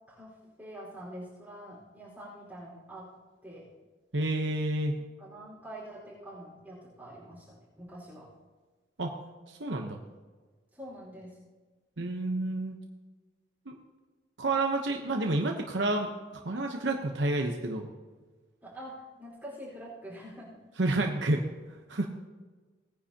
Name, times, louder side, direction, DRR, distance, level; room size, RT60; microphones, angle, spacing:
voice 1, 0.1-3.1 3.4-3.7 5.0-8.3 10.7-11.4 18.6-20.6, equal, 10° right, -9 dB, 4.6 m, -45 dB
voice 2, 4.1-5.0 9.0-9.1 9.5-10.0 12.0-12.8 13.7-13.8 14.4-16.1 16.4-17.9 20.8-21.4 21.9-22.1, right 2 dB, 75° right, 2 dB, 1.0 m, -29 dB
19.5 x 9.8 x 2.9 m, 1.4 s
head